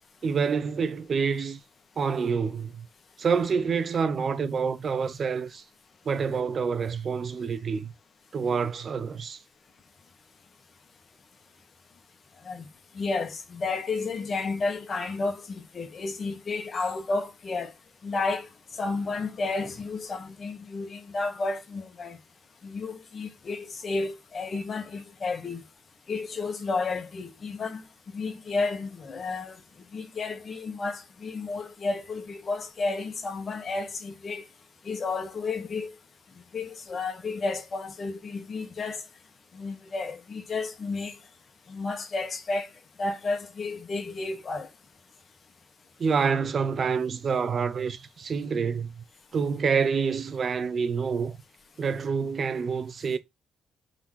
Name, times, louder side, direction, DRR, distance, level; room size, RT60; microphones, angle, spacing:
voice 1, 0.2-1.6 2.0-2.9 3.2-5.6 6.0-7.9 8.3-9.4 46.0-48.9 49.3-51.4 51.8-53.2, right 5 dB, 50° right, 0.9 m, -27 dB
voice 2, 12.9-17.7 18.0-18.5 18.8-22.2 22.6-25.6 26.1-27.8 28.1-29.6 29.9-34.4 34.8-35.9 36.5-39.0 39.5-41.2 41.7-42.7 43.0-44.7, left 3 dB, 45° left, 2.1 m, -32 dB
5.8 x 4.2 x 5.8 m
figure-of-eight pair, 40°, 0 cm